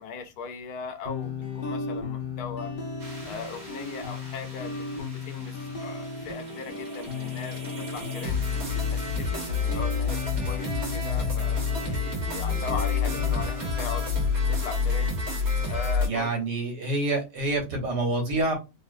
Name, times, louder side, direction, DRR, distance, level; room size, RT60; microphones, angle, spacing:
voice 1, 0.0-2.7 3.2-8.4 8.9-14.1 14.5-15.2 15.7-16.4, left 5 dB, 75° left, 1.1 m, -39 dB
sound 1, 1.0-16.1, left 4 dB, 50° left, 0.6 m, -36 dB
sound 2, 3.0-16.1, left 5 dB, 60° right, 1.7 m, -29 dB
voice 2, 16.0-18.5, right 2 dB, 80° right, 1.8 m, -27 dB
3.6 x 2.6 x 2.5 m
omnidirectional pair, 1.8 m